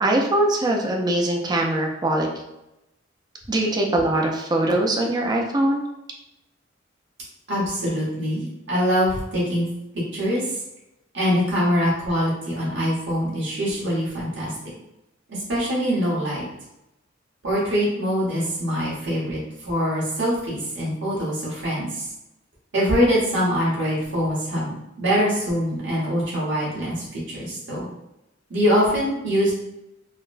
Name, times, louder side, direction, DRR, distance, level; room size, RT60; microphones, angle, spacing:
voice 1, 0.0-2.3 3.5-5.8, right 1 dB, 20° right, 0 dB, 0.4 m, -22 dB
voice 2, 7.5-9.7 9.9-10.6 11.1-14.5 15.3-16.4 17.4-22.1 22.7-27.9 28.5-29.5, equal, 65° right, -6 dB, 1.1 m, -23 dB
3.9 x 2.1 x 2.5 m, 0.90 s
head